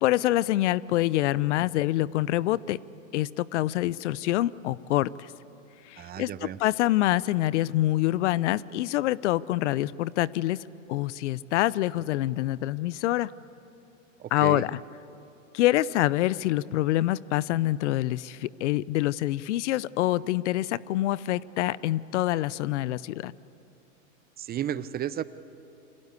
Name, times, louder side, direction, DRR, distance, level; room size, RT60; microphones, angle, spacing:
voice 1, 0.0-2.8 3.1-5.3 5.8-13.3 14.3-14.8 15.5-23.3, left 15 dB, 60° left, 21 dB, 0.8 m, -26 dB
voice 2, 6.0-6.6 14.2-14.7 24.4-25.2, right 11 dB, 25° right, 16 dB, 0.8 m, -33 dB
28.5 x 25.5 x 8.3 m, 3.0 s
hypercardioid pair, 110°, 39 cm